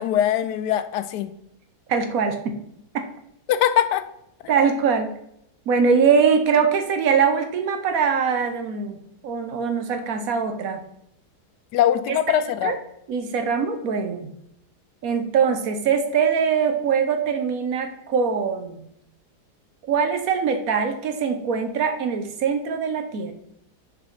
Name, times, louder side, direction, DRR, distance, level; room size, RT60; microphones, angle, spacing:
voice 1, 0.0-1.3 3.5-4.0 11.7-12.7, left 10 dB, 90° left, 11 dB, 1.2 m, -21 dB
voice 2, 1.9-2.6 4.5-5.1 5.7-9.0 9.2-10.8 12.1-12.8 13.1-14.3 15.0-18.8 19.9-23.3, right 6 dB, 65° right, 7 dB, 1.1 m, -22 dB
6.6 x 4.3 x 3.9 m, 0.75 s
omnidirectional pair, 1.7 m